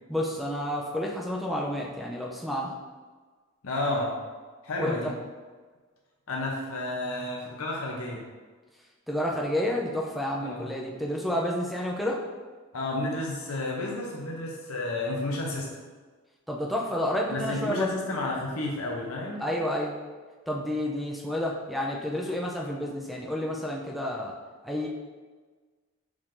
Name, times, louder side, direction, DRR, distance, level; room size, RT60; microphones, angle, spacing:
voice 1, 0.1-2.7 4.8-5.1 9.1-12.2 16.5-17.9 19.4-19.9 20.5-24.3 24.6-24.9, left 1 dB, ahead, -2 dB, 0.4 m, -30 dB
voice 2, 3.6-4.2 4.6-5.1 6.3-8.2 10.4-10.7 12.7-15.7 17.3-19.4, left 2 dB, 80° left, -2 dB, 0.7 m, -31 dB
4.7 x 2.6 x 3.7 m, 1.4 s
head